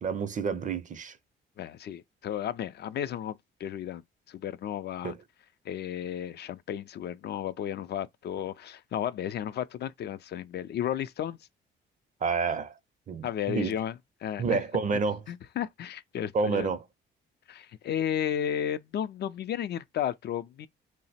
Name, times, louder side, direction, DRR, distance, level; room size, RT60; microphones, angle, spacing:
voice 1, 0.0-1.2 5.0-5.2 12.2-12.8 13.1-13.7 14.4-15.2 16.3-16.8, right 5 dB, 40° right, 0.5 m, -29 dB
voice 2, 1.6-4.0 4.3-5.1 5.7-11.4 13.2-14.0 14.2-14.6 15.3-16.7 17.5-20.7, left 10 dB, 55° left, 0.4 m, -33 dB
2.8 x 2.0 x 4.1 m
cardioid pair, 90°, 20 cm